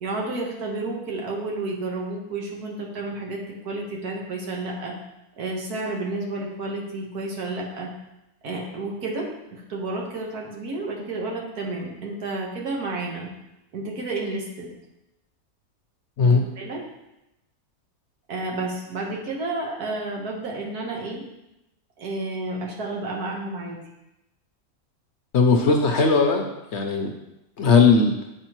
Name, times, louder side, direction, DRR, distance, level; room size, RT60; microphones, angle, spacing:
voice 1, 0.0-5.0 5.4-7.9 8.4-13.3 13.7-14.7 16.2-16.8 18.3-21.2 22.0-23.8, right 2 dB, 85° right, -1 dB, 1.7 m, -31 dB
voice 2, 25.3-26.5 26.7-27.1 27.6-28.1, left 4 dB, 60° left, 4 dB, 0.8 m, -18 dB
8.1 x 5.0 x 3.0 m, 0.91 s
omnidirectional pair, 1.6 m